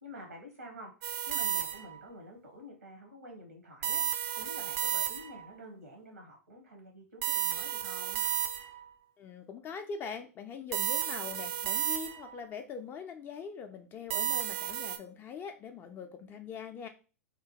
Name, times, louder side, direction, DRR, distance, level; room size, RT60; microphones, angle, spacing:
voice 1, 0.0-0.9 1.3-4.0 4.4-8.2, equal, 85° right, 2 dB, 0.9 m, -48 dB
sound 1, 1.0-2.0 3.8-5.5 7.2-8.9 10.7-12.4 14.1-15.0, right 11 dB, 50° right, 0.3 m, -33 dB
voice 2, 9.2-16.9, left 6 dB, 25° left, 7 dB, 0.3 m, -42 dB
2.8 x 2.1 x 2.8 m, 0.34 s
figure-of-eight pair, 95°, 8 cm